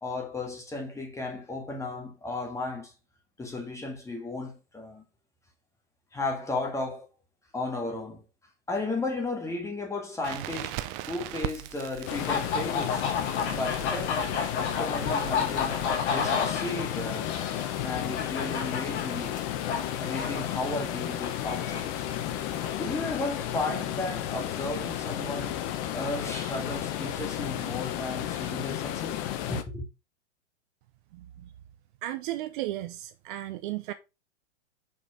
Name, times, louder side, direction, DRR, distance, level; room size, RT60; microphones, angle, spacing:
voice 1, 0.0-2.9 3.4-5.0 6.1-7.1 7.5-8.2 8.7-10.8 11.1-14.3 14.6-15.8 16.1-17.3 17.8-19.4 20.0-22.1 22.8-25.6 25.9-29.2 29.5-29.9, left 2 dB, 10° left, 1.7 m, -34 dB
Crackle, 10.2-16.0, right 14 dB, 20° right, 0.3 m, -40 dB
sound 1, 12.1-22.8, left 5 dB, 65° left, 2.9 m, -33 dB
sound 2, 12.1-29.6, left 11 dB, 40° left, 0.9 m, -33 dB
voice 2, 31.1-31.5 32.0-33.9, right 15 dB, 45° right, 0.7 m, -35 dB
5.6 x 4.5 x 4.6 m
hypercardioid pair, 125°, 35 cm